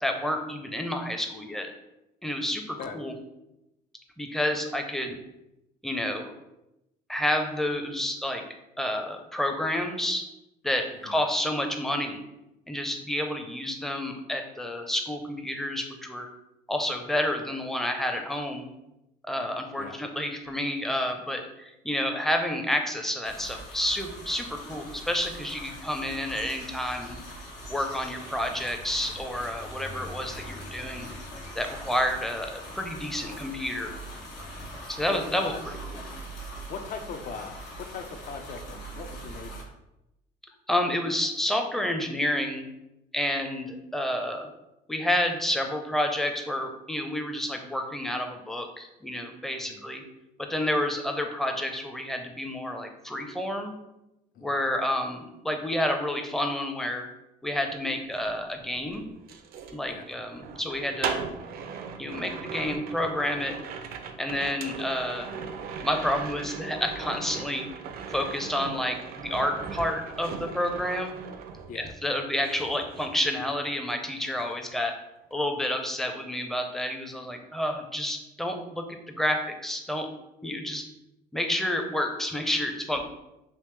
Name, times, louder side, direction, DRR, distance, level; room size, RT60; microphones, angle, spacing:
voice 1, 0.0-1.7 2.2-3.1 4.2-5.2 5.8-6.3 7.1-8.4 8.8-10.3 10.6-12.2 12.7-16.3 16.7-18.7 19.3-27.2 27.7-31.1 31.6-33.9 34.9-35.5 35.9-36.0 40.7-42.6 43.1-44.5 44.9-50.0 50.4-53.7 54.4-57.1 57.4-59.0 59.7-61.1 62.0-63.6 64.2-65.3 65.8-67.6 68.1-71.2 71.7-74.9 75.3-80.1 80.4-80.8 81.3-83.1, left 1 dB, ahead, 4 dB, 0.5 m, -29 dB
sound 1, 23.2-39.6, equal, 90° left, 1.1 m, -42 dB
voice 2, 35.1-35.6 36.7-39.7 49.7-49.8 54.3-54.6 59.9-60.0 71.7-71.9, left 5 dB, 55° left, 7 dB, 0.5 m, -39 dB
sound 2, 58.0-72.1 72.4-73.9 74.2-74.5, right 6 dB, 65° right, 0.4 m, -39 dB
3.4 x 2.9 x 3.2 m, 0.90 s
cardioid pair, 110°, 17 cm